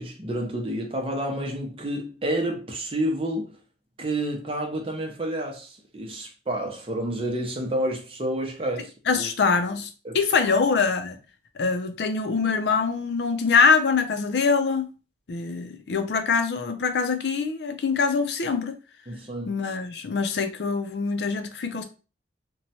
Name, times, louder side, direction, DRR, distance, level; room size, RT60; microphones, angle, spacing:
voice 1, 0.0-3.5 4.0-9.3 10.0-10.2 10.5-10.6 19.1-19.6, right 1 dB, 30° right, 0.6 m, -29 dB
voice 2, 9.1-9.9 10.1-11.2 11.6-14.9 15.3-18.8 19.5-21.8, left 5 dB, 70° left, 0.4 m, -24 dB
2.9 x 2.2 x 2.7 m
head